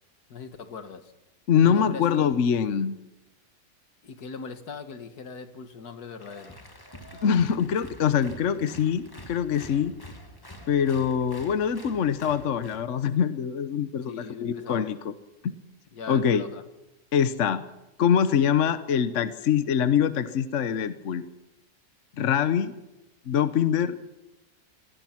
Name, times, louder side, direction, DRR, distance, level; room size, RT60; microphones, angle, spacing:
voice 1, 0.3-1.1 1.6-2.5 4.0-6.6 14.0-14.9 15.9-16.6, left 5 dB, 70° left, 9 dB, 2.0 m, -40 dB
voice 2, 1.5-2.9 7.2-9.9 10.7-15.1 15.4-15.5 16.1-16.4 17.1-17.6 18.0-21.2 22.2-22.7 23.3-24.0, left 8 dB, 55° left, 12 dB, 1.1 m, -24 dB
Applause, 6.2-12.9, equal, 15° left, 1.5 m, -47 dB
24.5 x 18.0 x 5.9 m, 0.98 s
omnidirectional pair, 1.7 m